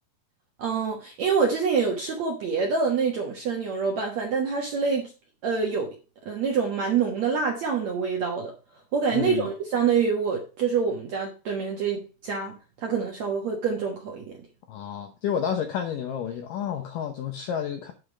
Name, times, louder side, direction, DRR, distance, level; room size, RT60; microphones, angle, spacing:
voice 1, 0.6-5.1 5.4-5.9 6.2-8.5 8.9-14.3, right 5 dB, 65° right, 1.8 m, -26 dB
voice 2, 9.1-9.5 14.7-17.9, left 8 dB, 75° left, 2.0 m, -30 dB
9.7 x 5.2 x 5.0 m
omnidirectional pair, 5.0 m